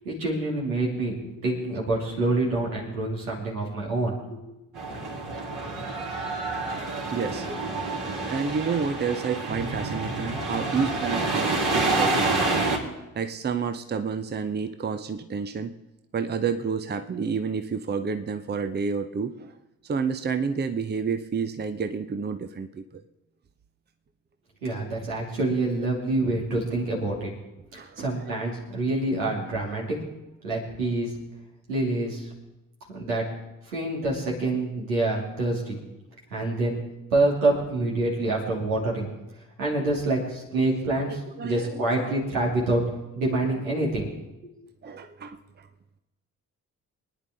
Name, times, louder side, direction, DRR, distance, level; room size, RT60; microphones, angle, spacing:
voice 1, 0.0-4.5 24.6-27.3 28.0-30.0 30.4-31.1 31.7-32.3 32.9-33.2 33.7-35.8 36.3-36.8 37.1-39.1 39.6-42.8 43.1-44.1 44.4-44.5, right 2 dB, 80° right, -3 dB, 2.8 m, -26 dB
sound 1, 4.7-12.8, right 3 dB, 50° right, 3.2 m, -28 dB
voice 2, 7.1-7.6 8.3-12.7 13.1-15.8 16.1-19.5 19.8-22.8 27.8-28.1 41.0-42.1 44.8-45.7, right 5 dB, 25° right, 9 dB, 0.8 m, -30 dB
25.0 x 9.9 x 3.7 m, 1.0 s
figure-of-eight pair, 40°, 40 cm